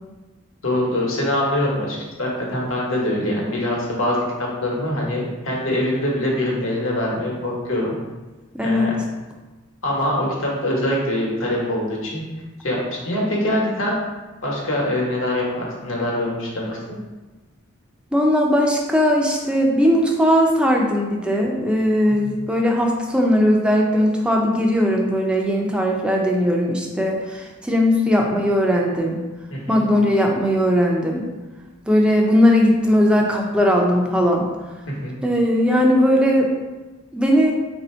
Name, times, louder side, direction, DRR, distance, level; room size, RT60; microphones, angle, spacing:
voice 1, 0.6-8.0 8.6-8.9 9.8-12.2 12.6-14.0 14.4-16.8 22.2-22.3 29.5-29.8 34.9-35.1, left 1 dB, 80° left, -3 dB, 1.1 m, -23 dB
voice 2, 8.5-8.9 18.1-29.2 29.7-31.3 31.9-34.5 35.2-36.5 37.1-37.5, equal, 5° right, 0 dB, 0.4 m, -18 dB
3.4 x 2.7 x 4.3 m, 1.2 s
head